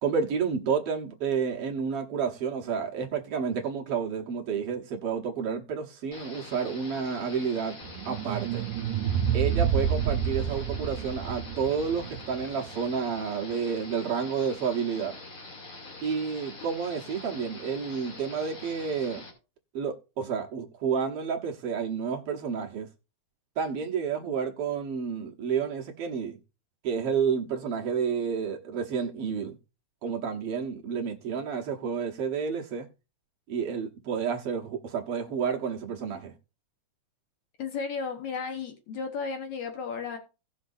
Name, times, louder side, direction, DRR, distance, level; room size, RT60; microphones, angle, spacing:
voice 1, 0.0-7.8 8.0-8.6 9.3-15.2 16.0-19.2 19.7-22.9 23.6-26.4 26.8-29.6 30.0-32.9 33.5-36.3, right 6 dB, 60° right, 1.8 m, -30 dB
sound 1, 6.1-19.3, left 2 dB, 45° left, 3.5 m, -45 dB
sound 2, 7.8-12.9, right 8 dB, 80° right, 2.1 m, -29 dB
voice 2, 37.6-40.2, left 5 dB, 70° left, 2.4 m, -34 dB
17.5 x 6.3 x 2.6 m
omnidirectional pair, 3.5 m